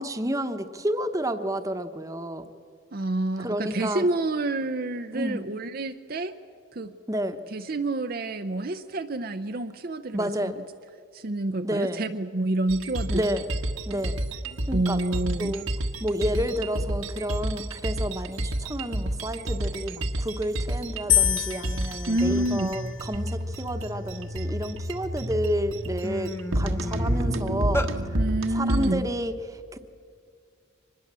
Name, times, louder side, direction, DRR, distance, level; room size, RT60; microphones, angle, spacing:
voice 1, 0.0-2.5 3.4-4.1 5.1-5.5 7.1-7.4 10.1-10.6 11.6-12.1 13.1-13.4 13.9-14.2 14.7-15.0 15.3-15.6 16.0-28.2 28.5-29.8, equal, 15° right, 8 dB, 1.0 m, -30 dB
voice 2, 2.9-6.4 6.7-6.9 7.5-10.5 11.1-13.2 14.7-15.6 22.1-22.7 28.1-29.1, right 2 dB, 45° right, 7 dB, 0.6 m, -28 dB
sound 1, 12.7-28.9, right 1 dB, 80° right, 1.6 m, -30 dB
sound 2, 21.1-23.3 24.1-24.6, left 12 dB, 65° left, 0.8 m, -28 dB
sound 3, 21.9-22.0 22.2-22.6 23.1-24.6 25.2-25.4 25.7-27.9, equal, 10° left, 1.0 m, -34 dB
25.0 x 21.0 x 7.5 m, 2.3 s
head